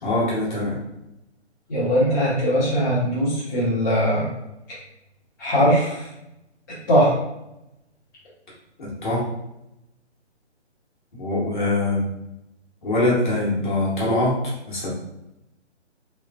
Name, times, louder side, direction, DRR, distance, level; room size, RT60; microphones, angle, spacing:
voice 1, 0.0-0.8 8.8-9.2 11.2-12.1 12.8-14.3 14.7-14.9, left 2 dB, 45° left, -6 dB, 1.2 m, -23 dB
voice 2, 1.7-4.3 5.4-6.1 6.9-7.2, equal, 20° left, -14 dB, 0.6 m, -20 dB
3.2 x 2.4 x 2.2 m, 0.87 s
hypercardioid pair, 160°, 35 cm